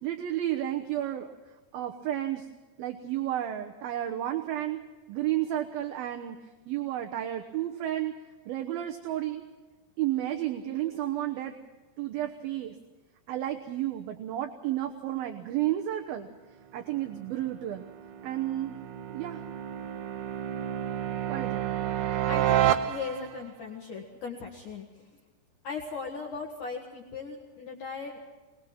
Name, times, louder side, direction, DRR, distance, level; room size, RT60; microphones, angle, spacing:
voice 1, 0.0-1.3 1.7-2.5 2.8-4.8 5.1-6.4 6.7-8.1 8.5-9.4 10.0-11.6 12.0-12.8 13.3-16.3 16.7-17.9 18.2-18.8 19.1-19.4 21.3-21.7, right 13 dB, 70° right, 4 dB, 2.6 m, -32 dB
sound 1, 17.1-23.5, right 11 dB, 85° right, 1.7 m, -30 dB
voice 2, 22.3-25.1 25.6-28.2, left 4 dB, 55° left, 0 dB, 2.8 m, -38 dB
23.0 x 21.0 x 5.9 m, 1.2 s
omnidirectional pair, 5.0 m